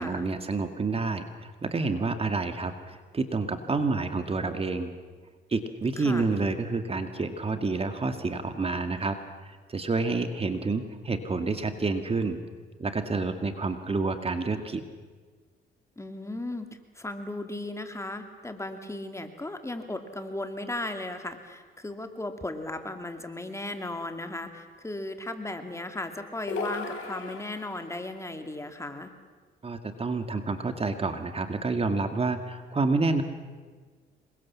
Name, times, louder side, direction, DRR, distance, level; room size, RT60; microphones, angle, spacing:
voice 1, 0.0-4.9 5.5-9.2 9.4-12.4 12.8-14.8 29.6-33.2, right 3 dB, 30° right, 8 dB, 2.0 m, -29 dB
voice 2, 6.0-6.4 16.0-16.7 16.9-29.1, left 2 dB, 15° left, 7 dB, 2.6 m, -36 dB
sound 1, 26.5-28.0, left 4 dB, 75° left, 4.8 m, -36 dB
27.0 x 22.5 x 7.4 m, 1.5 s
cardioid pair, 90°, 20 cm